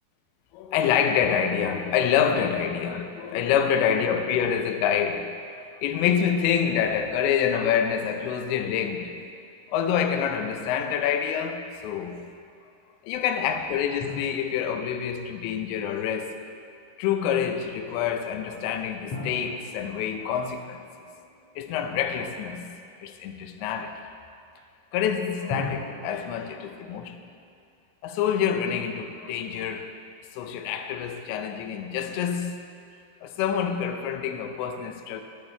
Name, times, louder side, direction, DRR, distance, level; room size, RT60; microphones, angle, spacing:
voice 1, 0.5-5.4 5.8-9.2 9.7-12.2 13.1-16.4 17.0-20.8 21.6-22.6 23.0-24.0 24.9-27.2 28.0-29.9 30.3-32.6 33.2-35.2, left 8 dB, 85° left, 3.0 m, -26 dB
sound 1, 14.0-16.3 19.1-22.0 25.5-27.4, left 3 dB, 60° left, 1.6 m, -40 dB
12.5 x 9.0 x 3.2 m
omnidirectional pair, 5.1 m